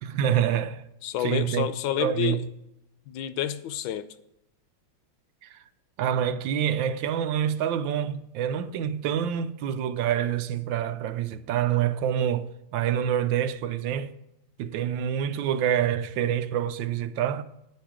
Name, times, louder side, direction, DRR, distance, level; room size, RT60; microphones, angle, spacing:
voice 1, 0.0-0.9 1.2-1.7 2.0-2.4 5.4-5.6 6.0-14.1 14.6-17.4, right 9 dB, 80° right, 1.4 m, -27 dB
voice 2, 1.0-2.4 3.1-4.1, left 10 dB, 85° left, 1.5 m, -29 dB
9.6 x 9.5 x 4.9 m
omnidirectional pair, 2.1 m